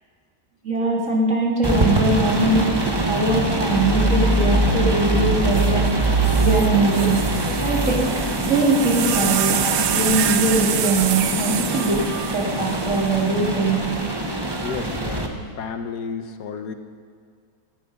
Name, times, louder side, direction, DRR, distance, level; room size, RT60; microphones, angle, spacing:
voice 1, 0.6-7.2 7.6-13.8, right 2 dB, 45° right, -2 dB, 2.8 m, -22 dB
sound 1, 1.6-15.3, right 2 dB, 15° right, 1.1 m, -23 dB
sound 2, 5.9-6.0 6.2-13.6 14.5-15.0, right 10 dB, 75° right, 1.3 m, -27 dB
voice 2, 14.6-16.7, left 6 dB, 70° left, 7 dB, 1.6 m, -32 dB
18.0 x 13.5 x 5.4 m, 2.1 s
omnidirectional pair, 1.9 m